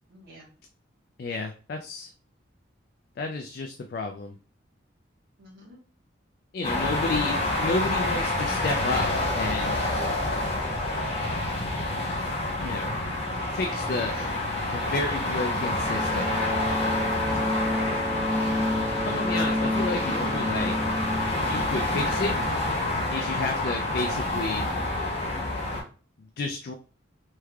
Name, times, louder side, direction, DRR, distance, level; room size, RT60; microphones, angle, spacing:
voice 1, 0.1-0.5 5.4-5.8 14.1-14.4 17.3-17.8 21.9-22.1, right 1 dB, 50° right, -5 dB, 1.0 m, -48 dB
voice 2, 1.2-2.1 3.2-4.3 6.5-9.8 12.6-13.0 13.5-14.1 14.7-16.3 19.0-20.8 21.4-22.3 23.1-24.6 26.4-26.7, left 3 dB, 50° left, 4 dB, 0.3 m, -31 dB
sound 1, 6.6-25.8, left 2 dB, 30° left, 0.8 m, -28 dB
sound 2, 15.4-24.0, left 1 dB, 10° right, 0.5 m, -31 dB
3.4 x 3.2 x 2.2 m, 0.39 s
head